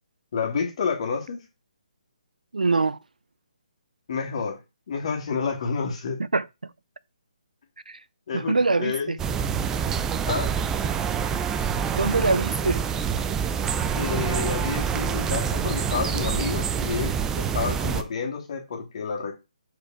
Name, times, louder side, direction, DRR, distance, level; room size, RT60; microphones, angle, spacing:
voice 1, 0.3-1.4 4.1-4.6 4.9-6.2 8.3-9.2 10.3-10.5 13.9-19.3, left 5 dB, 50° left, 2.3 m, -29 dB
voice 2, 2.5-3.0 6.3-6.5 7.9-8.0 8.3-9.2 12.0-12.8, right 3 dB, 90° right, 0.6 m, -23 dB
sound 1, 9.2-18.0, right 7 dB, 10° right, 0.5 m, -26 dB
5.0 x 4.7 x 5.9 m
figure-of-eight pair, 150°, 4 cm